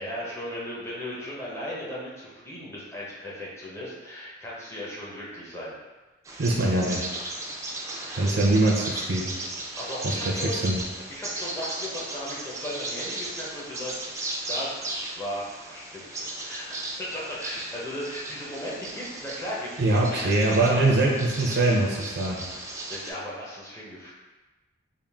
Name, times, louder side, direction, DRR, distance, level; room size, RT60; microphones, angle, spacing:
voice 1, 0.0-5.8 9.8-10.7 11.1-14.2 14.5-14.8 15.2-20.8 22.9-24.1, equal, 15° left, -6 dB, 0.9 m, -36 dB
Bird vocalization bird call bird song, 6.2-23.1, right 2 dB, 15° right, 0.5 m, -36 dB
voice 2, 6.4-7.1 8.2-9.4 10.2-10.8 19.8-22.5, right 2 dB, 60° right, -2 dB, 0.6 m, -23 dB
3.8 x 2.5 x 3.5 m, 1.2 s
head